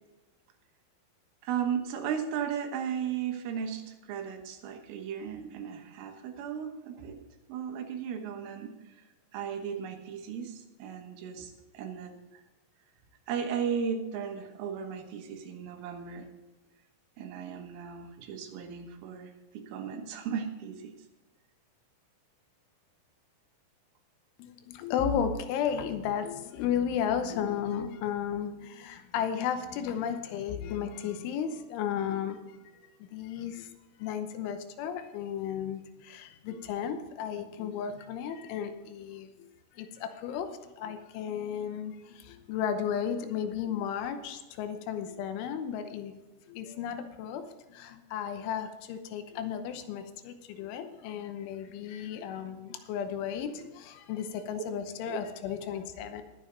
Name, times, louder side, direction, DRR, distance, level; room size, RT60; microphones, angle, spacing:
voice 1, 1.4-7.2 7.5-8.9 9.3-12.1 13.3-16.3 17.2-20.9 54.5-54.6, right 7 dB, 85° right, 5 dB, 3.8 m, -36 dB
voice 2, 24.4-32.4 33.1-33.7 34.0-39.3 39.8-40.5 40.8-46.1 46.5-47.4 47.7-56.2, left 8 dB, 80° left, 8 dB, 3.3 m, -34 dB
20.5 x 7.3 x 3.9 m, 1.1 s
omnidirectional pair, 5.6 m